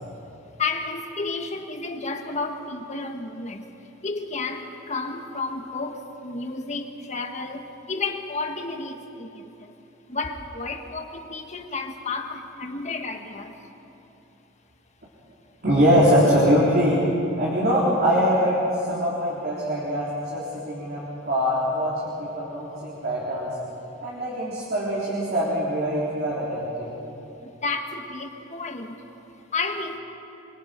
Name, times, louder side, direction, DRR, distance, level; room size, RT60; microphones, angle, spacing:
voice 1, 0.6-3.7 4.0-9.7 10.1-13.6 20.5-20.6 27.4-29.0 29.5-30.0, left 3 dB, 35° left, 4 dB, 1.6 m, -32 dB
voice 2, 15.6-17.0 17.4-18.6 18.9-23.5 24.0-26.9, equal, 50° right, -7 dB, 4.0 m, -23 dB
26.5 x 24.0 x 5.3 m, 2.9 s
head